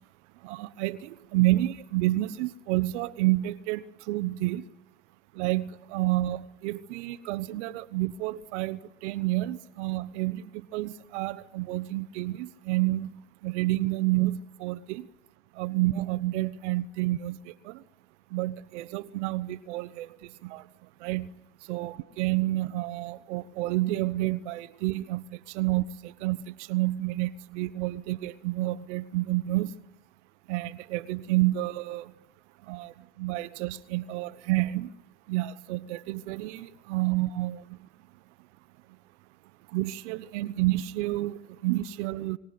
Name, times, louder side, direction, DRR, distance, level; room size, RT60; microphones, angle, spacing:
voice 1, 0.4-4.6 5.3-13.1 13.4-15.1 15.5-17.8 18.3-20.7 21.0-21.3 21.7-29.8 30.5-32.1 32.6-34.9 35.3-37.8 39.7-42.4, right 17 dB, 70° right, 1.1 m, -29 dB
23.0 x 18.0 x 9.5 m
supercardioid pair, 110°, 36 cm